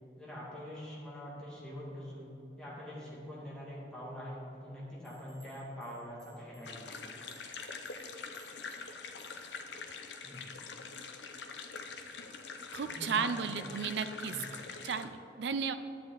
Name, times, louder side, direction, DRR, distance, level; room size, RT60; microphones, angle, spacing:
voice 1, 0.2-2.3 2.6-7.1 10.2-10.5 12.9-13.7 14.3-14.4, equal, 5° left, -7 dB, 2.3 m, -45 dB
sound 1, 5.0-9.7, right 3 dB, 20° right, 2.1 m, -63 dB
sound 2, 6.6-15.1, left 4 dB, 80° left, 0.7 m, -44 dB
voice 2, 12.7-14.4 14.8-15.7, right 5 dB, 80° right, 11 dB, 0.5 m, -34 dB
10.5 x 8.4 x 4.0 m, 3.0 s
head